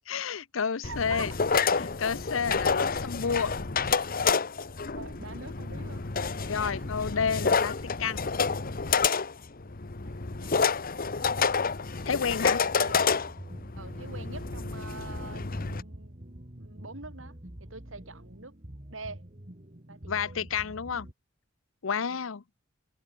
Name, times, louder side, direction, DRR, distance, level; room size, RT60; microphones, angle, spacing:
voice 1, 0.1-1.3 1.8-3.5 6.5-8.2 12.1-12.6 20.1-21.1 21.8-22.4, left 6 dB, 80° left, 0.7 m, -30 dB
sound 1, 0.8-15.8, left 5 dB, 45° left, 1.2 m, -29 dB
voice 2, 0.8-1.3 4.0-4.1 4.6-4.7 4.9-6.1 6.6-6.9 10.0-10.1 10.4-10.8 12.6-13.0 13.7-16.2 16.6-17.3 17.6-18.6 18.9-19.2 19.9-20.3 22.0-22.3, right 3 dB, 75° right, 4.8 m, -45 dB
sound 2, 12.8-21.1, right 1 dB, 40° right, 2.4 m, -46 dB
open air
head